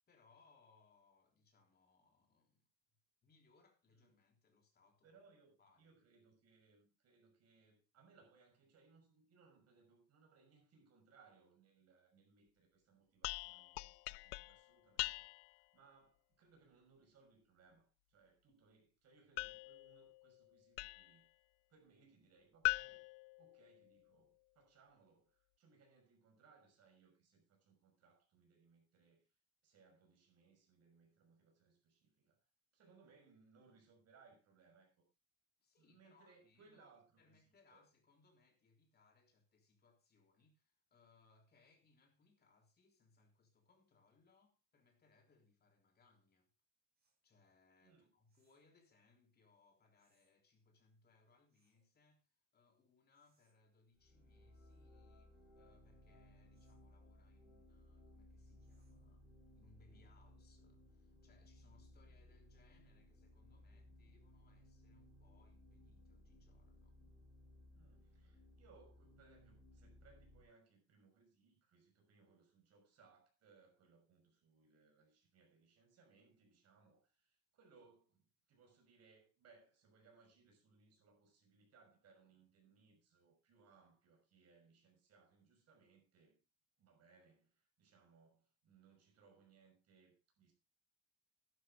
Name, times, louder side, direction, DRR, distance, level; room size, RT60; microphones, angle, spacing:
voice 1, 0.1-2.7 3.2-5.2 5.6-5.9 35.6-46.5 47.2-59.3 59.5-67.0, left 3 dB, 25° left, 3.5 m, -72 dB
voice 2, 5.0-21.3 21.7-23.1 23.4-29.3 29.6-32.4 32.7-35.0 35.8-37.4 37.7-37.8 47.8-48.1 67.7-86.4 86.8-90.5, right 4 dB, 40° right, 6.2 m, -69 dB
sound 1, 13.2-15.6 19.4-21.2 22.6-24.1, left 26 dB, 85° left, 0.5 m, -43 dB
sound 2, 47.0-47.2 48.3-48.7 50.0-50.3 51.5-51.9 53.1-53.6 54.5-54.9 56.5-56.9 58.6-59.1, right 3 dB, 25° right, 7.3 m, -85 dB
sound 3, 53.9-70.4, left 1 dB, ahead, 6.5 m, -63 dB
12.0 x 11.5 x 3.7 m
cardioid pair, 165°, 39 cm